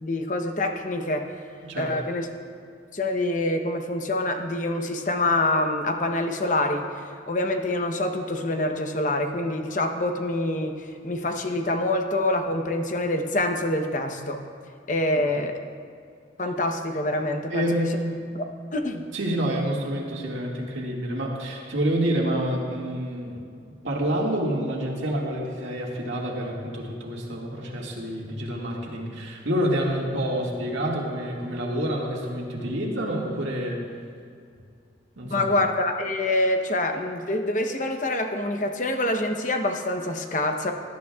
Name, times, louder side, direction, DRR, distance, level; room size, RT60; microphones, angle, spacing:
voice 1, 0.0-1.3 1.8-2.3 2.9-14.4 14.9-15.6 16.4-17.9 18.3-18.4 18.7-19.0 35.3-40.7, left 1 dB, 40° left, 5 dB, 0.8 m, -26 dB
voice 2, 1.6-1.9 15.1-15.2 17.5-18.2 19.1-23.4 23.8-33.8 35.2-35.5, right 1 dB, 85° right, -3 dB, 2.0 m, -28 dB
17.5 x 11.5 x 2.4 m, 2.3 s
head